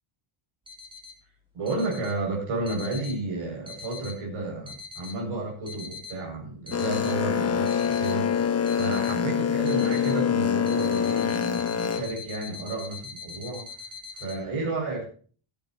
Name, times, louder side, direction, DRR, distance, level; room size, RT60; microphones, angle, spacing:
sound 1, 0.7-1.1 1.7-2.1 2.7-3.1 3.7-4.1 4.7-5.1 5.7-6.2 6.7-7.1 7.7-8.2 8.7-9.2 9.7-10.2 10.7-14.4, left 4 dB, 10° right, 3.0 m, -42 dB
voice 1, 1.5-13.7 14.1-15.0, right 2 dB, 75° right, -2 dB, 7.3 m, -32 dB
Boat Water vehicle, 6.7-12.0, left 8 dB, 30° left, 1.5 m, -25 dB
17.0 x 11.0 x 3.1 m, 0.41 s
cardioid pair, 140°, 49 cm